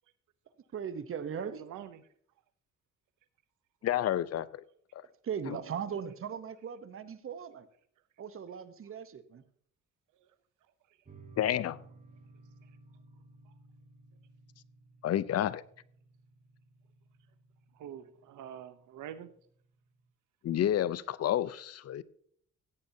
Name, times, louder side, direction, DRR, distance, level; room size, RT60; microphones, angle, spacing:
voice 1, 0.7-1.6 5.2-7.7 8.2-9.4, right 7 dB, 45° right, 13 dB, 0.9 m, -38 dB
voice 2, 1.4-2.0 5.5-6.0 10.2-10.3 17.7-19.3, right 10 dB, 80° right, 13 dB, 0.8 m, -46 dB
voice 3, 3.8-4.6 5.5-5.6 11.4-11.8 15.0-15.6 20.4-22.0, left 11 dB, 55° left, 18 dB, 0.6 m, -30 dB
sound 1, 11.0-20.0, right 3 dB, 25° right, 1.7 m, -58 dB
16.5 x 8.5 x 2.7 m, 0.62 s
cardioid pair, 90°, 30 cm